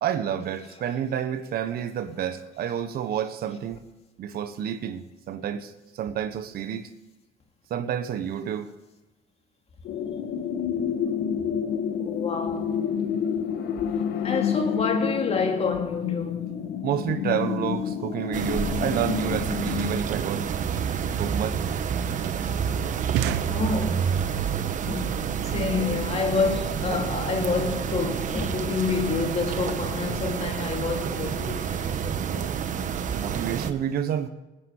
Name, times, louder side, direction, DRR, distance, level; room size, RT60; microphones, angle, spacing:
voice 1, 0.0-3.8 4.2-6.9 7.7-8.7 13.6-14.0 16.8-20.5 21.2-21.6 25.0-25.1 33.1-34.3, right 9 dB, 65° right, 1.3 m, -30 dB
sound 1, 9.8-20.0, left 8 dB, 80° left, 1.4 m, -29 dB
voice 2, 12.0-12.8 14.2-16.4 23.5-24.1 24.9-25.3 25.5-32.5, left 4 dB, 40° left, 2.5 m, -28 dB
sound 2, 18.3-33.7, right 7 dB, 50° right, 1.2 m, -29 dB
sound 3, 19.6-24.2, right 12 dB, 90° right, 0.9 m, -35 dB
19.5 x 10.0 x 4.8 m
cardioid pair, 110°, 17 cm